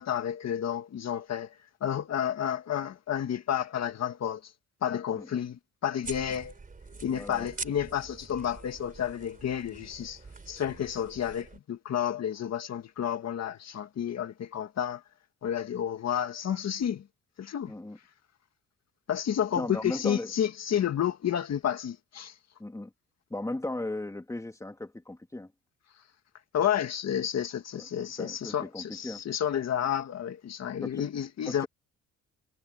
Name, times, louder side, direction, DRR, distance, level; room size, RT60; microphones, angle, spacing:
voice 1, 0.0-4.5 4.8-6.5 7.0-15.0 15.4-17.0 17.4-17.7 19.1-22.3 26.5-31.7, left 9 dB, 60° left, 1.9 m, -31 dB
sound 1, 6.0-11.6, right 4 dB, 25° right, 3.8 m, -45 dB
voice 2, 7.1-7.5 17.7-18.0 19.5-20.3 22.6-22.9 23.3-25.5 27.7-29.2 30.8-31.0 31.5-31.7, left 2 dB, 10° left, 2.9 m, -37 dB
cardioid pair, 90°, 30 cm